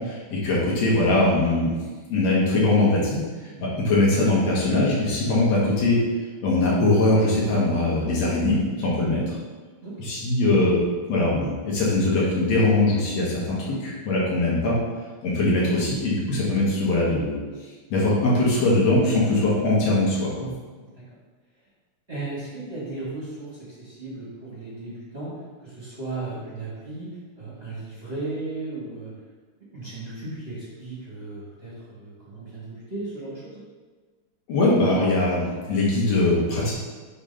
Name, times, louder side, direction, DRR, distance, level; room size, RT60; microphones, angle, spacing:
voice 1, 0.0-1.7 2.1-3.2 3.6-6.0 6.4-9.4 10.0-10.8 11.1-14.8 15.2-17.4 17.9-20.3 34.5-36.7, left 2 dB, 60° left, -5 dB, 2.6 m, -21 dB
voice 2, 22.1-25.3 25.6-27.1 27.4-29.1 29.7-33.6, right 2 dB, 25° right, -9 dB, 1.9 m, -36 dB
7.1 x 4.1 x 5.6 m, 1.4 s
omnidirectional pair, 3.5 m